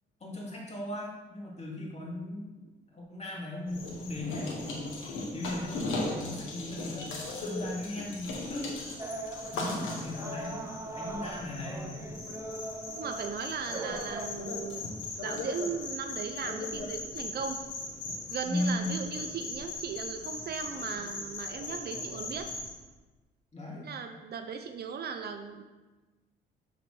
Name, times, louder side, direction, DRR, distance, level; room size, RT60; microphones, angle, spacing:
voice 1, 0.2-2.5 2.9-5.0 5.3-7.1 7.4-8.7 9.5-12.0 18.4-19.0 23.5-23.9, left 1 dB, 35° left, -3 dB, 2.1 m, -37 dB
sound 1, 3.7-22.7, left 2 dB, 85° left, 1.2 m, -38 dB
sound 2, 9.0-14.3, right 2 dB, 15° right, 0.7 m, -40 dB
voice 2, 12.9-14.8 15.2-17.6 18.3-22.5 23.7-25.6, right 6 dB, 55° right, 6 dB, 0.6 m, -37 dB
6.9 x 4.0 x 4.7 m, 1.2 s
cardioid pair, 90°, 20 cm